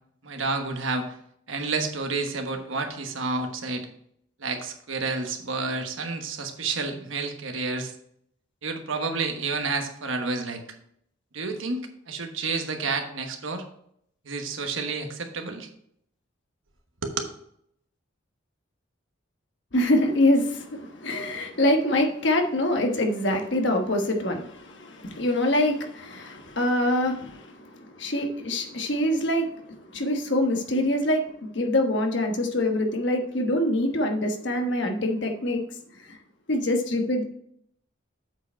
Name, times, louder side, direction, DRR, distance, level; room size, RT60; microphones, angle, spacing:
voice 1, 0.2-1.1 1.5-3.9 4.4-7.9 8.6-10.6 11.3-13.6 14.2-15.7 17.0-17.2, right 3 dB, 80° right, 5 dB, 1.2 m, -30 dB
voice 2, 19.7-35.6 36.0-36.2 36.5-37.2, left 1 dB, 60° left, 3 dB, 1.2 m, -25 dB
7.9 x 5.0 x 4.4 m, 0.69 s
head